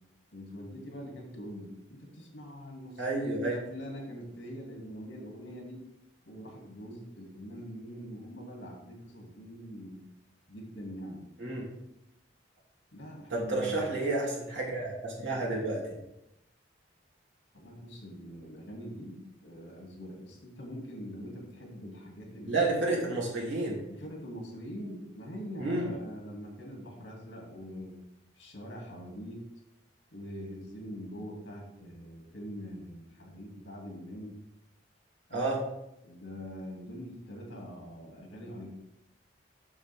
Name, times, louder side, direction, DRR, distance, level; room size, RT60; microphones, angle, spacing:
voice 1, 0.3-5.8 6.3-10.0 10.5-11.3 12.9-13.9 17.5-22.8 23.9-27.9 28.3-29.5 30.1-34.4 35.3-35.6 36.0-38.7, equal, 75° left, 0 dB, 2.3 m, -43 dB
voice 2, 3.0-3.5 11.4-11.7 13.3-15.9 22.5-23.8 25.6-25.9 35.3-35.6, right 2 dB, 80° right, -4 dB, 2.7 m, -30 dB
7.2 x 6.8 x 3.5 m, 0.85 s
head